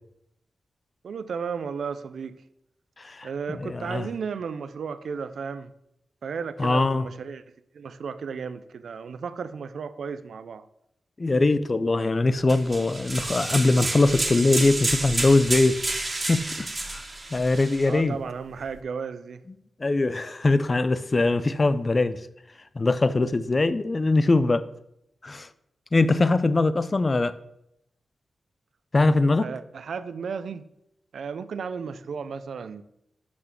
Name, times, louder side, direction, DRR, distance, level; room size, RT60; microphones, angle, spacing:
voice 1, 1.0-2.4 3.2-5.7 6.2-7.4 7.7-10.6 17.9-19.4 29.4-30.7 31.1-32.8, right 6 dB, 80° right, 0.5 m, -34 dB
voice 2, 3.0-4.1 6.6-7.1 11.2-15.8 16.3-17.0 17.3-18.2 19.8-22.2 22.7-24.7 25.2-25.5 25.9-27.4 28.9-29.5, left 2 dB, 40° left, 0.6 m, -22 dB
sound 1, 12.5-17.9, right 2 dB, 35° right, 1.9 m, -30 dB
6.2 x 6.0 x 5.9 m
cardioid pair, 50°, 0 cm